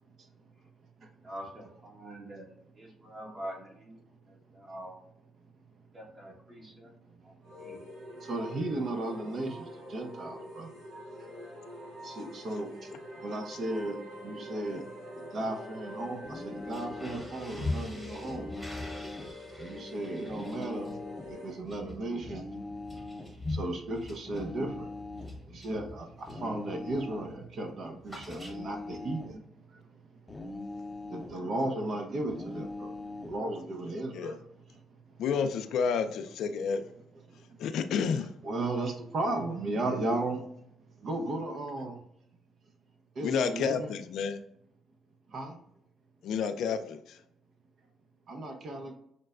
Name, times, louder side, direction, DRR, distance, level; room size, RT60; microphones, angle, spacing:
voice 1, 1.2-4.0 4.2-5.0 5.9-6.9 7.2-7.8, right 1 dB, 35° right, 1 dB, 1.3 m, -45 dB
sound 1, 7.4-21.6, left 1 dB, 85° right, 1.1 m, -45 dB
voice 2, 8.2-10.7 12.0-12.7 13.2-14.0 14.2-14.8 15.3-18.5 19.6-20.9 21.3-22.4 23.5-24.9 25.5-29.4 31.1-32.9 33.2-34.4 38.0-38.1 38.4-40.4 41.0-41.9 43.2-43.9 45.3-45.5 48.3-49.0, right 2 dB, 60° right, 4 dB, 0.7 m, -35 dB
sound 2, 16.2-17.4 18.2-19.4 20.2-21.4 22.2-23.3 24.3-25.4 26.3-27.4 28.3-29.4 30.3-31.4 32.3-33.4, left 2 dB, 20° left, 0.5 m, -42 dB
sound 3, 16.6-26.5 26.9-27.2 27.4-29.0, left 2 dB, 10° right, 1.2 m, -42 dB
voice 3, 35.2-36.8 37.6-38.3 43.2-44.4 46.2-47.2, left 6 dB, 75° left, 9 dB, 0.3 m, -30 dB
6.4 x 2.2 x 2.4 m, 0.74 s
supercardioid pair, 70°, 0 cm